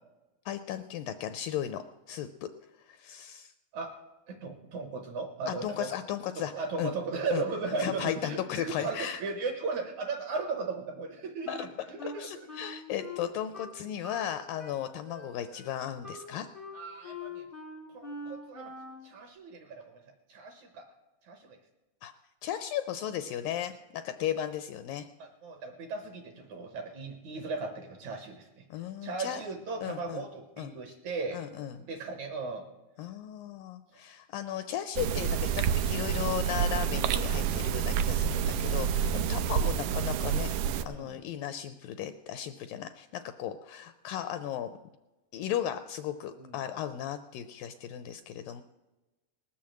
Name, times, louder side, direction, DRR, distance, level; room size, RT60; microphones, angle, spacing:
voice 1, 0.5-2.5 2.8-3.5 5.5-6.5 6.8-6.9 7.3-7.4 7.8-9.2 11.5-11.7 12.2-16.5 22.0-22.1 22.4-25.1 28.7-29.4 29.8-30.2 30.6-30.7 31.3-31.8 33.0-40.5 40.8-44.8 45.3-48.6, left 10 dB, 80° left, 10 dB, 2.0 m, -36 dB
voice 2, 4.3-5.9 6.4-12.5 16.7-17.4 17.9-18.7 19.0-20.0 20.3-20.9 21.2-21.6 25.2-28.6 29.0-31.4 31.8-32.7 36.9-37.1 40.8-41.2 46.4-46.6, right 4 dB, 65° right, 6 dB, 1.9 m, -37 dB
Wind instrument woodwind instrument, 11.4-14.3 14.6-19.1, left 2 dB, 25° right, 0.3 m, -44 dB
sound 1, 35.0-40.8, right 8 dB, 90° right, 1.8 m, -28 dB
19.0 x 7.2 x 7.6 m, 1.1 s
omnidirectional pair, 4.4 m